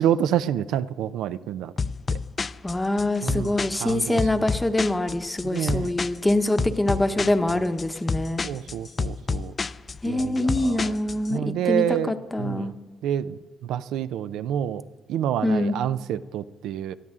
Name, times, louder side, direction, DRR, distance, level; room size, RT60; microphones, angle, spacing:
voice 1, 0.0-1.7 2.1-2.2 3.2-3.5 3.8-4.2 5.4-5.9 6.6-6.7 7.5-7.6 8.4-9.5 10.1-10.9 11.3-12.1 12.4-12.7 13.0-14.8 15.1-16.9, right 10 dB, 85° right, 14 dB, 0.4 m, -28 dB
sound 1, 1.8-11.3, left 4 dB, 30° left, 0.3 m, -30 dB
voice 2, 2.6-8.4 10.0-12.7 15.4-15.8, left 1 dB, 10° left, 9 dB, 0.8 m, -24 dB
19.5 x 13.5 x 3.7 m, 1.3 s
cardioid pair, 125°, 0 cm